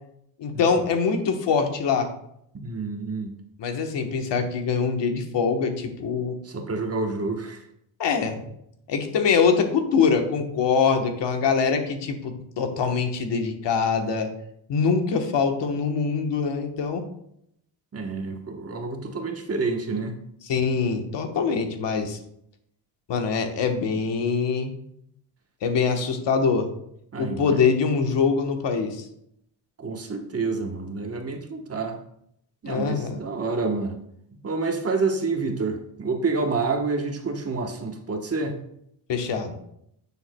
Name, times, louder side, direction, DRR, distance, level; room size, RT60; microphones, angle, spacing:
voice 1, 0.4-2.1 3.6-6.3 8.0-8.5 8.9-14.3 14.7-17.0 20.4-22.2 23.1-24.7 25.6-26.7 27.2-29.0 32.7-33.2 39.1-39.5, left 5 dB, 65° left, 5 dB, 1.2 m, -24 dB
voice 2, 2.6-3.3 6.4-7.6 17.9-20.2 27.1-27.7 29.8-32.0 32.6-33.9 34.4-38.6, right 3 dB, 30° right, 4 dB, 1.1 m, -28 dB
10.5 x 7.0 x 2.2 m, 0.74 s
cardioid pair, 105°, 45 cm